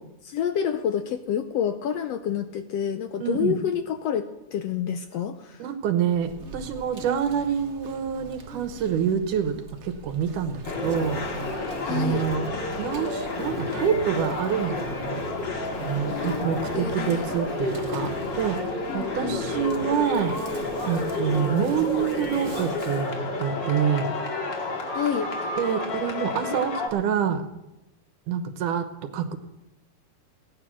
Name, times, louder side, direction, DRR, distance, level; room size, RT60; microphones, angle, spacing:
voice 1, 0.2-5.7 11.8-12.2 16.1-17.3 18.9-19.4 24.9-25.3, left 8 dB, 75° left, 9 dB, 1.6 m, -28 dB
voice 2, 3.2-3.6 5.6-9.5 9.8-11.2 11.9-12.5 12.8-15.2 15.8-18.6 18.9-20.4 20.9-24.1 25.6-27.4 28.3-28.9 29.1-29.4, right 8 dB, 85° right, 10 dB, 2.7 m, -26 dB
Insect, 6.1-23.1, right 2 dB, 55° right, 0.7 m, -44 dB
sound 1, 10.6-26.9, left 2 dB, 40° left, 2.7 m, -30 dB
17.0 x 9.8 x 6.3 m, 0.93 s
omnidirectional pair, 3.5 m